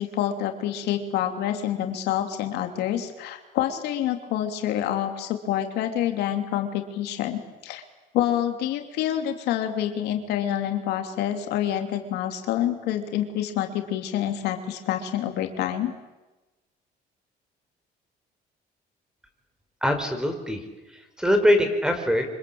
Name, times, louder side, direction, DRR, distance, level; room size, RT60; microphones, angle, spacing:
voice 1, 0.0-7.8 8.1-15.9, left 11 dB, 85° left, 6 dB, 3.0 m, -27 dB
voice 2, 19.8-20.6 20.9-22.3, equal, 5° right, 7 dB, 4.7 m, -23 dB
27.0 x 25.5 x 8.7 m, 1.1 s
cardioid pair, 120°, 17 cm